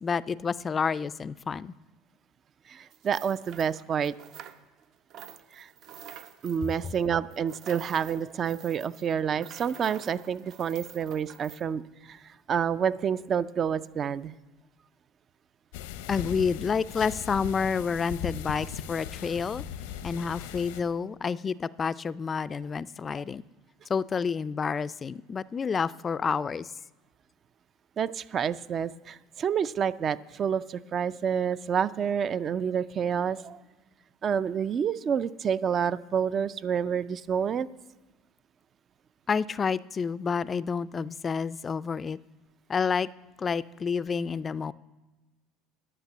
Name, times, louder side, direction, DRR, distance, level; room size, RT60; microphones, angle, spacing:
voice 1, 0.0-1.7 16.1-19.6 20.0-23.4 23.9-26.7 39.3-42.2 42.7-43.1 43.4-44.7, left 5 dB, 30° left, 18 dB, 0.3 m, -29 dB
voice 2, 2.7-4.1 5.5-5.7 6.4-14.3 28.0-33.6 34.2-37.7, right 7 dB, 40° right, 16 dB, 0.4 m, -29 dB
sound 1, 2.9-4.8 5.1-11.6, right 10 dB, 60° right, 0.7 m, -48 dB
sound 2, 15.7-20.8, left 9 dB, 85° left, 0.7 m, -38 dB
11.0 x 6.0 x 8.2 m, 1.2 s
supercardioid pair, 95°, 0 cm